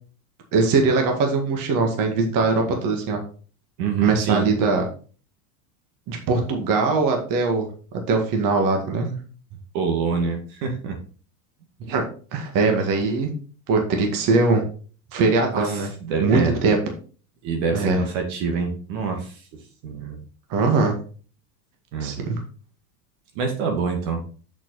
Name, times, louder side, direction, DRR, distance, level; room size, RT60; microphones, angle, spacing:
voice 1, 0.5-3.2 4.0-4.8 6.1-7.7 8.1-9.2 11.8-12.0 12.3-13.3 13.7-14.6 15.1-15.9 16.2-16.8 17.7-18.0 20.5-21.0 22.0-22.4, right 3 dB, 40° right, 3 dB, 2.1 m, -21 dB
voice 2, 3.8-4.5 9.7-11.0 15.5-16.6 17.4-19.3 19.8-20.2 21.9-22.2 23.4-24.2, right 5 dB, 60° right, 3 dB, 2.1 m, -26 dB
6.8 x 6.0 x 4.1 m, 0.40 s
supercardioid pair, 130°, 48 cm